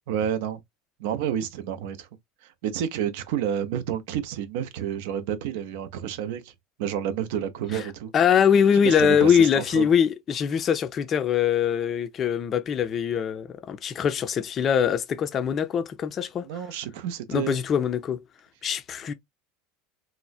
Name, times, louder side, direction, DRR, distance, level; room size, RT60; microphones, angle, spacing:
voice 1, 0.1-0.6 1.0-2.1 2.6-6.5 6.8-8.1 8.8-9.9 16.5-17.6, right 9 dB, 60° right, 0.5 m, -29 dB
voice 2, 8.1-16.5 17.3-18.2 18.6-19.1, left 8 dB, 35° left, 0.4 m, -23 dB
3.1 x 2.1 x 2.3 m
figure-of-eight pair, 75°, 0 cm